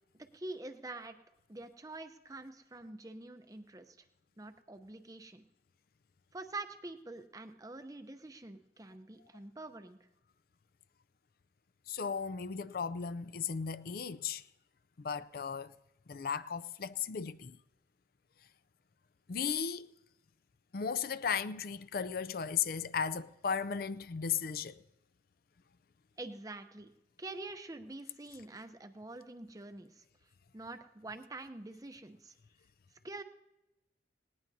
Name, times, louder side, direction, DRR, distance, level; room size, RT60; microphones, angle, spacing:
voice 1, 0.3-1.2 1.5-4.0 4.4-5.5 6.3-10.0 26.2-26.9 27.2-30.0 30.5-32.3 33.0-33.2, right 2 dB, 20° right, 0.7 m, -46 dB
voice 2, 11.9-14.4 15.0-15.7 16.1-17.6 19.3-19.9 20.7-24.8, left 6 dB, 50° left, 0.4 m, -36 dB
19.0 x 18.5 x 2.7 m
head